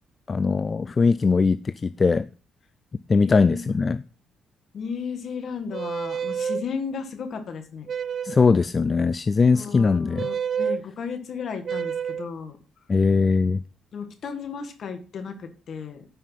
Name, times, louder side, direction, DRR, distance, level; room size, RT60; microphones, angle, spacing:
voice 1, 0.3-2.3 3.1-4.0 8.2-10.3 12.9-13.6, left 4 dB, 35° left, 14 dB, 0.4 m, -20 dB
voice 2, 3.2-3.8 4.7-7.9 9.5-12.6 13.9-16.1, left 6 dB, 60° left, 8 dB, 1.8 m, -34 dB
sound 1, 5.7-6.6 7.9-8.5 10.2-10.8 11.6-12.3, right 7 dB, 50° right, 0.4 m, -28 dB
9.6 x 5.5 x 5.8 m, 0.38 s
cardioid pair, 90°, 0 cm